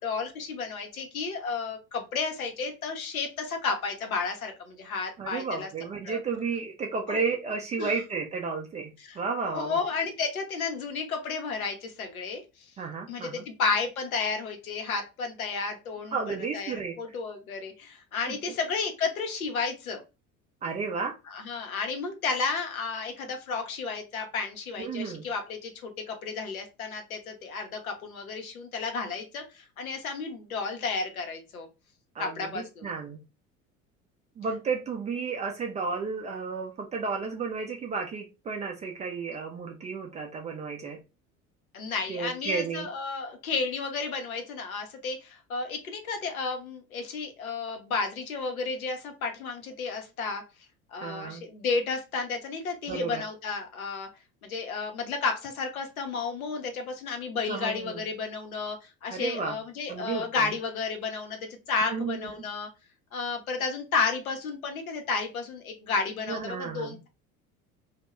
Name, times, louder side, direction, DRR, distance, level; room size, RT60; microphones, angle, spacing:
voice 1, 0.0-5.7 6.0-6.2 7.1-7.2 7.8-7.9 9.0-9.2 9.5-12.4 13.1-20.0 21.3-31.7 32.2-32.9 41.7-50.4 50.9-54.1 54.4-58.8 59.0-62.7 63.1-67.1, left 4 dB, 75° left, 4 dB, 0.8 m, -32 dB
voice 2, 5.2-9.8 12.8-13.5 16.1-17.0 18.3-18.4 20.6-21.2 24.8-25.3 32.1-33.2 34.4-41.0 42.1-42.9 51.0-51.4 52.9-53.2 57.5-58.0 59.1-59.6 59.9-60.5 61.9-62.3 66.3-67.0, right 5 dB, 20° right, 2 dB, 0.3 m, -32 dB
2.2 x 2.1 x 3.0 m, 0.28 s
figure-of-eight pair, 65°, 43 cm